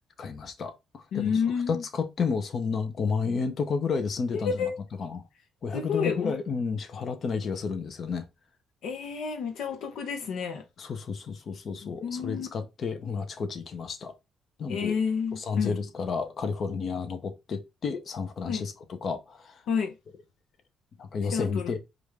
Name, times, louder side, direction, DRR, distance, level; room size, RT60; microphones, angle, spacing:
voice 1, 0.2-1.4 1.7-4.7 5.0-5.2 5.6-8.3 10.8-14.1 14.6-15.0 15.3-19.6 21.0-21.8, left 5 dB, 55° left, 0.8 m, -31 dB
voice 2, 1.1-1.8 4.3-4.7 5.7-6.3 8.8-10.6 11.8-12.5 14.7-15.8 18.4-18.6 19.7-19.9 21.3-21.7, left 6 dB, 80° left, 0.8 m, -30 dB
4.8 x 2.6 x 3.3 m
cardioid pair, 90°, 0 cm